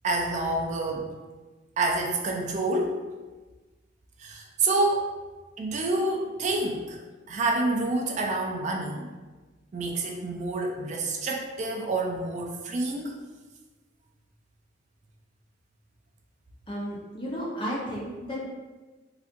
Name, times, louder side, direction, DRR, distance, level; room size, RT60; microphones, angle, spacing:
voice 1, 0.0-1.1 1.8-3.0 4.2-5.1 5.6-7.0 7.3-9.1 9.7-13.2, right 2 dB, 40° right, 1 dB, 0.3 m, -28 dB
voice 2, 16.7-18.5, equal, 25° left, -5 dB, 0.8 m, -33 dB
3.9 x 2.4 x 2.5 m, 1.2 s
head